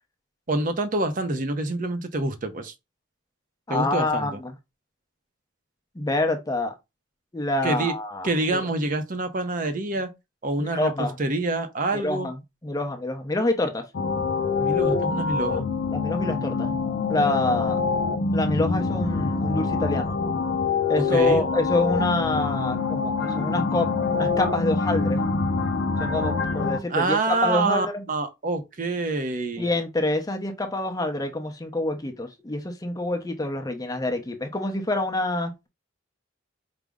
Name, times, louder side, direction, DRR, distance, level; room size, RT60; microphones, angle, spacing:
voice 1, 0.5-2.7 3.7-4.4 7.6-8.0 8.2-10.1 10.4-12.3 14.6-15.7 21.0-21.5 26.9-29.7, right 2 dB, 40° right, 0.6 m, -26 dB
voice 2, 3.7-4.5 6.0-6.7 7.3-8.6 10.6-11.1 11.9-13.8 15.9-16.7 17.1-17.8 18.3-20.2 20.9-25.2 26.0-28.0 29.6-35.7, left 2 dB, 20° left, 0.6 m, -26 dB
sound 1, 13.9-26.8, left 4 dB, 60° left, 0.5 m, -25 dB
5.0 x 2.0 x 3.5 m
head